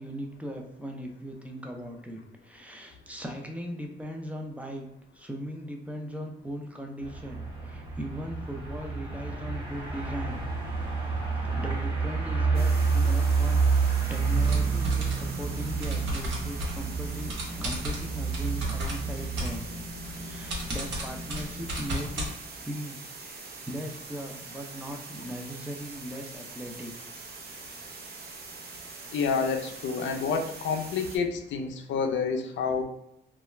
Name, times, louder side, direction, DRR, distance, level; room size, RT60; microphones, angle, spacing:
voice 1, 0.0-4.9 5.1-10.4 11.0-11.2 11.5-19.7 20.1-22.3 22.6-23.0 23.7-26.9, equal, 5° right, 2 dB, 0.5 m, -39 dB
sound 1, 7.0-19.5, right 4 dB, 25° right, 1.1 m, -29 dB
sound 2, 12.5-31.2, right 4 dB, 50° right, 0.6 m, -44 dB
sound 3, 14.4-22.3, equal, 70° right, 1.0 m, -35 dB
voice 2, 29.1-32.8, left 5 dB, 70° left, 4 dB, 0.5 m, -28 dB
2.3 x 2.0 x 3.1 m, 0.79 s
cardioid pair, 90°, 20 cm